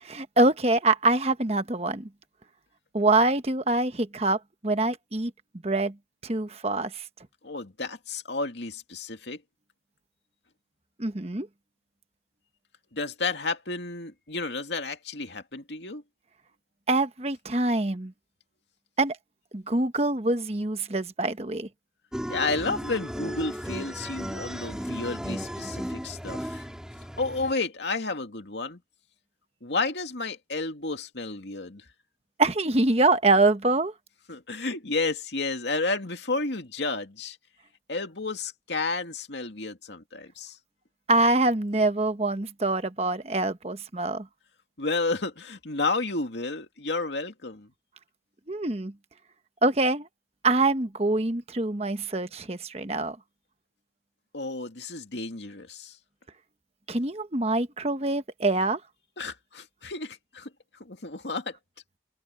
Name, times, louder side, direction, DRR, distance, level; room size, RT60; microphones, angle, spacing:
voice 1, 0.0-2.1 2.9-5.3 5.6-5.9 6.2-7.0 11.0-11.5 16.9-18.1 19.0-19.2 19.5-21.7 32.4-33.9 41.1-44.3 48.5-48.9 49.6-50.1 50.4-53.2 56.9-58.8, right 2 dB, 35° right, 1.2 m, -25 dB
voice 2, 7.4-9.4 12.9-16.0 22.3-26.7 27.2-28.8 29.6-31.8 34.3-37.4 37.9-40.6 44.8-47.7 54.3-56.0 59.2-60.5 60.8-61.6, left 3 dB, 90° left, 2.4 m, -31 dB
sound 1, 22.1-27.5, equal, 5° right, 4.2 m, -35 dB
head